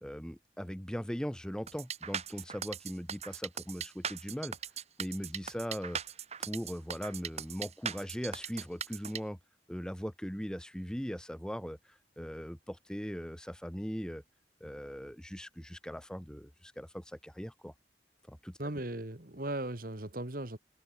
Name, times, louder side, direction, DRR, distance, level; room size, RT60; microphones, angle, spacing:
voice 1, 0.0-4.5 5.0-6.0 6.4-9.4 9.7-14.2 14.6-17.7 18.3-18.6, equal, 5° left, 1.5 m, -40 dB
sound 1, 1.7-9.2, right 7 dB, 35° right, 2.7 m, -39 dB
voice 2, 18.6-20.6, right 1 dB, 55° right, 2.2 m, -37 dB
head